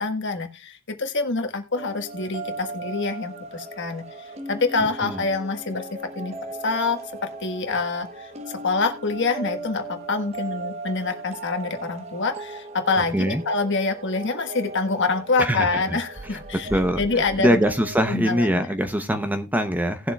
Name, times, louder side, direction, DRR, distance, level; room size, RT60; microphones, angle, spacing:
voice 1, 0.0-5.9 6.1-6.3 6.6-16.7 17.0-17.6 18.1-18.7, left 3 dB, 55° left, 5 dB, 1.5 m, -26 dB
sound 1, 1.7-18.1, right 2 dB, 30° right, 1.0 m, -37 dB
voice 2, 15.4-16.0 16.3-16.4 16.7-20.1, equal, 10° right, 8 dB, 0.7 m, -23 dB
18.5 x 7.1 x 2.3 m, 0.27 s
head